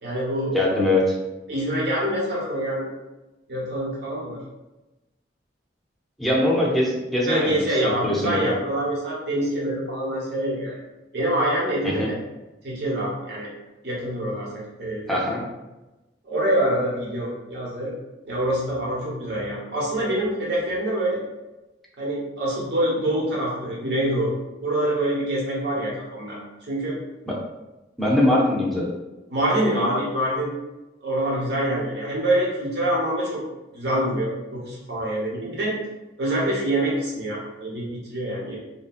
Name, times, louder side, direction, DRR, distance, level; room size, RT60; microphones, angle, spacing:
voice 1, 0.0-0.6 1.5-2.9 3.5-4.4 7.3-10.8 11.1-12.2 12.6-13.5 13.8-15.2 16.2-17.9 18.2-21.2 22.0-24.3 24.6-26.4 26.7-27.0 29.3-30.5 31.0-33.4 33.7-35.8 36.2-38.6, right 1 dB, 60° right, -5 dB, 1.0 m, -25 dB
voice 2, 0.5-1.2 6.2-7.6 7.8-8.5 12.0-12.1 15.1-15.4 27.3-27.4 28.0-28.9, left 1 dB, ahead, -4 dB, 0.5 m, -21 dB
2.8 x 2.6 x 2.4 m, 1.0 s
head